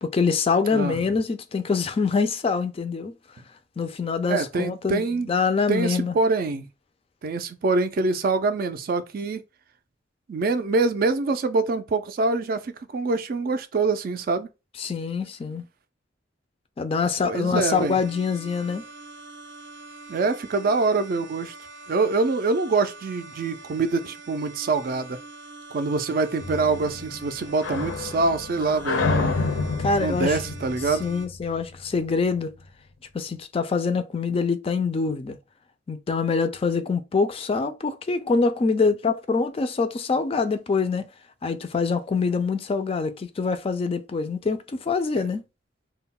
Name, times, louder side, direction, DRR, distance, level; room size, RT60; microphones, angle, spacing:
voice 1, 0.0-3.1 3.8-5.0 5.3-6.1 14.8-15.6 16.8-18.8 29.8-30.4 31.0-32.5 33.1-35.4 35.9-41.1 41.4-45.4, left 4 dB, 30° left, 0.3 m, -25 dB
voice 2, 4.3-5.3 5.7-6.7 7.2-9.4 10.3-14.5 17.2-18.0 20.1-21.5 21.9-25.2 25.7-29.4 30.0-31.1 45.2-45.3, right 3 dB, 50° right, 0.4 m, -25 dB
sound 1, 17.7-31.3, right 3 dB, 90° right, 0.6 m, -44 dB
sound 2, 26.4-31.9, left 3 dB, 85° left, 0.6 m, -29 dB
2.3 x 2.1 x 3.5 m
head